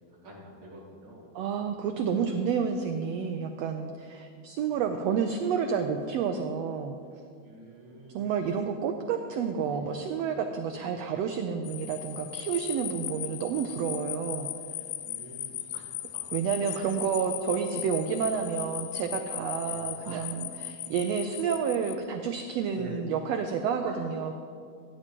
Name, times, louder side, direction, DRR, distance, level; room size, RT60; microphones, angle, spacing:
voice 1, 0.1-1.3 5.1-5.2 7.4-8.3 9.7-9.9 10.7-10.9 15.0-16.2 16.6-17.0 18.2-18.3 19.6-20.2 22.7-23.0 23.8-24.0, right 2 dB, 45° right, -6 dB, 3.3 m, -47 dB
voice 2, 1.3-7.0 8.1-14.5 16.3-24.3, right 6 dB, 85° right, 6 dB, 1.4 m, -30 dB
sound 1, 11.6-21.9, left 13 dB, 80° left, 1.6 m, -38 dB
16.5 x 9.9 x 3.0 m, 2.3 s
omnidirectional pair, 3.5 m